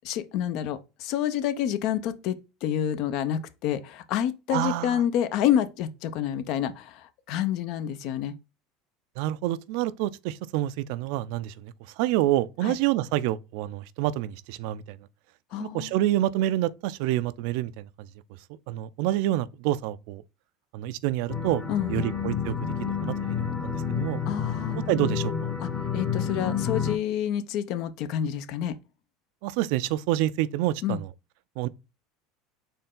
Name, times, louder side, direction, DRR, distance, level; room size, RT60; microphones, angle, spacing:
voice 1, 0.0-8.3 12.6-12.8 15.5-15.9 21.7-22.1 24.3-24.8 25.6-28.8 30.8-31.0, left 10 dB, 60° left, 0.6 m, -28 dB
voice 2, 4.5-5.0 9.2-15.0 15.6-17.9 18.7-20.2 20.7-21.6 21.9-24.2 24.9-25.5 29.4-31.1 31.6-31.7, right 14 dB, 70° right, 0.4 m, -28 dB
sound 1, 21.3-27.0, left 7 dB, 30° left, 1.2 m, -29 dB
4.4 x 3.2 x 3.7 m
supercardioid pair, 120°, 0 cm